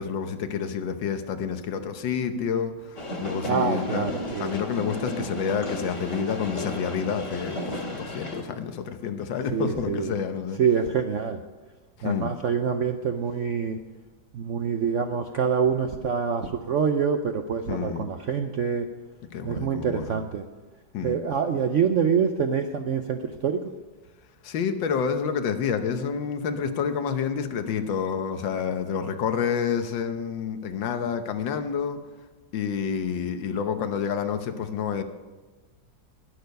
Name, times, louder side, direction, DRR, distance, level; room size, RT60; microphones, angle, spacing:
voice 1, 0.0-4.1 4.4-10.6 12.0-12.3 17.7-18.1 19.3-20.2 20.9-21.2 24.4-32.0 32.5-35.0, left 7 dB, 85° left, 8 dB, 1.7 m, -29 dB
sound 1, 3.0-8.4, left 1 dB, 40° left, 2.3 m, -33 dB
voice 2, 3.4-4.5 9.5-10.1 10.6-11.4 12.0-13.8 14.3-18.9 19.4-20.4 21.0-23.6, right 6 dB, 70° right, 7 dB, 0.7 m, -26 dB
20.0 x 6.7 x 5.3 m, 1.3 s
omnidirectional pair, 2.0 m